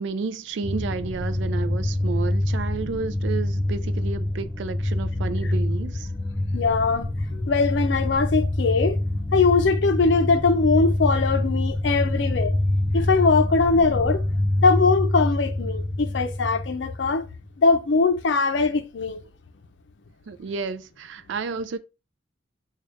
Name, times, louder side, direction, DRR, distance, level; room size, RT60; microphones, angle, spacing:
voice 1, 0.0-6.1 20.3-21.8, right 4 dB, 70° right, 0.3 m, -31 dB
sound 1, 0.6-17.4, left 1 dB, 15° left, 0.4 m, -26 dB
voice 2, 6.5-9.0 9.3-12.5 12.9-14.2 14.6-17.3 17.6-19.2, left 4 dB, 70° left, 0.5 m, -21 dB
3.5 x 2.3 x 3.9 m
head